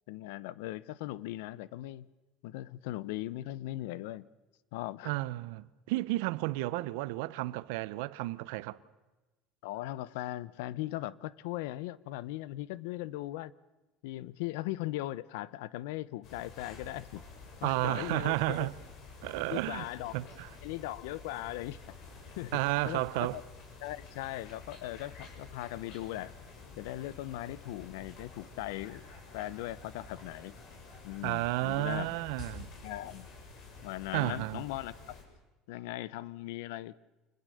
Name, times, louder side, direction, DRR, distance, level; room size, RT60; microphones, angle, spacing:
voice 1, 0.1-2.1 2.4-4.3 4.7-5.2 9.6-13.5 14.0-17.3 17.6-18.7 19.5-20.1 20.6-21.8 22.4-23.4 23.8-26.3 26.8-29.0 29.3-30.6 31.0-32.1 32.8-33.3 33.8-34.9 35.7-37.0, left 16 dB, 85° left, 0.8 m, -39 dB
voice 2, 5.0-8.8 17.6-18.7 19.2-19.8 20.1-20.5 22.5-23.4 31.2-32.7 34.1-34.6, right 19 dB, 80° right, 0.9 m, -32 dB
sound 1, 16.2-35.2, left 4 dB, 60° left, 7.0 m, -50 dB
27.5 x 21.0 x 6.6 m
supercardioid pair, 110°, 0 cm